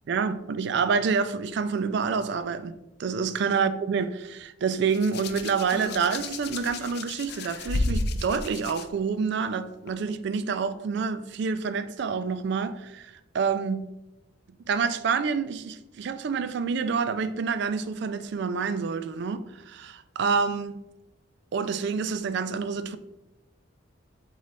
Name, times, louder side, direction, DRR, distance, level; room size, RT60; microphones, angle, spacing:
voice 1, 0.1-13.8 14.7-19.4 19.7-20.8 21.5-23.0, right 5 dB, 60° right, 0.3 m, -28 dB
Hands, 4.9-8.8 9.9-10.1, left 2 dB, 55° left, 0.3 m, -32 dB
4.1 x 3.7 x 3.2 m
head